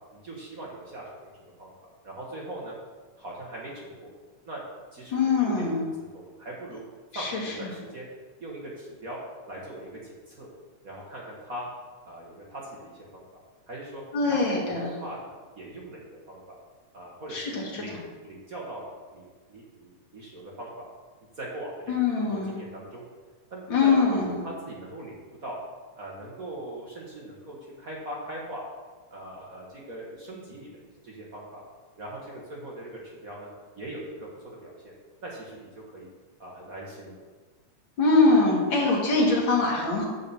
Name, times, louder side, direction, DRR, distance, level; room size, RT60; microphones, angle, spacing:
voice 1, 0.0-1.7 2.0-2.7 3.2-4.1 4.5-4.6 4.9-6.8 7.1-8.1 8.4-9.2 9.5-10.5 10.8-11.7 12.0-13.2 13.7-14.0 14.5-15.2 15.5-16.4 16.9-20.8 21.4-23.0 23.5-25.6 26.0-28.6 29.1-30.7 31.0-31.6 32.0-33.5 33.7-34.9 35.2-36.1 36.4-37.2, right 1 dB, 50° right, -4 dB, 1.0 m, -40 dB
voice 2, 5.1-5.8 7.1-7.5 14.1-14.9 17.3-17.8 21.9-22.5 23.7-24.3 38.0-40.0, left 3 dB, 45° left, -2 dB, 2.3 m, -23 dB
9.8 x 4.2 x 6.9 m, 1.4 s
omnidirectional pair, 3.4 m